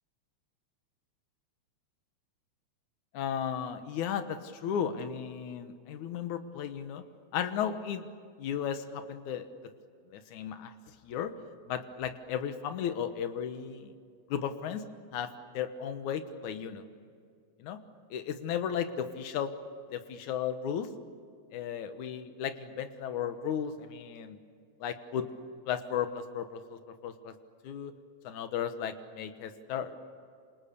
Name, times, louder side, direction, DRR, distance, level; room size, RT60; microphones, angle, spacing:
voice 1, 3.1-7.0 7.3-8.1 8.4-9.5 10.1-11.3 11.7-13.9 14.3-14.9 15.1-16.8 17.6-17.8 18.1-19.5 19.9-20.9 21.5-24.4 24.8-25.3 25.7-27.3 27.6-27.9 28.2-30.0, left 8 dB, 85° left, 8 dB, 2.7 m, -35 dB
28.0 x 27.5 x 7.0 m, 2.2 s
omnidirectional pair, 3.3 m